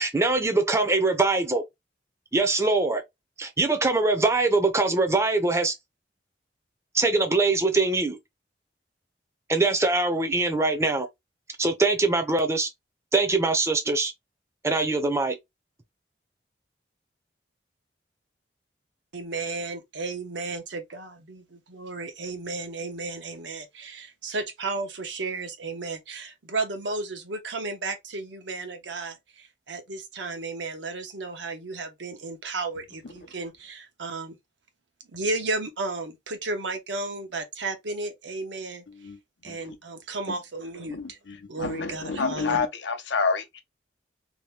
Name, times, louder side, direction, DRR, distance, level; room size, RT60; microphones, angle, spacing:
voice 1, 0.0-1.6 2.3-3.0 3.4-5.7 6.9-8.2 9.5-11.1 11.6-12.7 13.1-14.1 14.6-15.4, right 3 dB, 15° right, 0.5 m, -23 dB
voice 2, 19.1-34.4 35.1-38.8 39.4-41.2 41.5-42.7, right 3 dB, 80° right, 0.8 m, -33 dB
voice 3, 40.9-43.6, left 4 dB, 75° left, 0.6 m, -29 dB
2.8 x 2.2 x 3.1 m
head